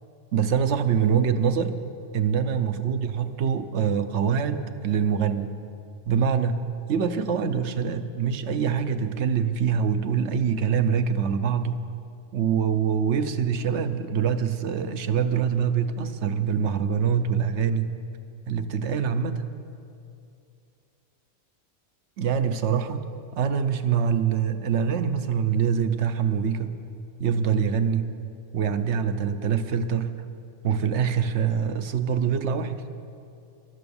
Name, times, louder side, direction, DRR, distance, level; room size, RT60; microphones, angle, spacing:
voice 1, 0.3-1.8 2.1-5.5 6.1-11.9 12.3-17.9 18.5-19.4 22.2-23.1 23.4-26.8 27.2-28.1 28.5-30.2 30.6-32.8, right 7 dB, 65° right, 10 dB, 1.0 m, -24 dB
13.0 x 12.0 x 7.1 m, 2.5 s
omnidirectional pair, 1.3 m